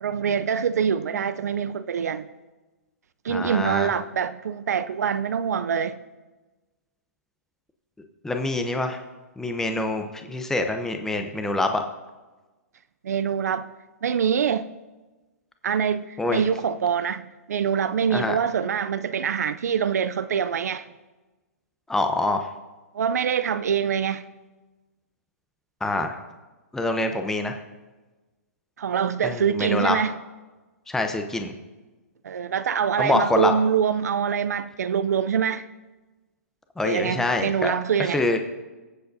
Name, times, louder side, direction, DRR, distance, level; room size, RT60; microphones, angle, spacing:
voice 1, 0.0-2.3 3.2-6.0 13.0-13.7 14.0-14.7 15.6-20.8 22.9-24.2 28.8-30.2 32.2-35.7 36.8-38.2, right 7 dB, 80° right, 0.5 m, -25 dB
voice 2, 3.3-3.9 8.2-9.0 9.4-11.8 16.2-16.4 18.1-18.3 21.9-22.5 25.8-26.2 26.7-27.6 29.2-30.0 30.9-31.5 33.0-33.5 36.8-37.7 38.0-38.4, left 2 dB, 5° left, 0.7 m, -25 dB
23.0 x 7.7 x 2.7 m
hypercardioid pair, 135°, 9 cm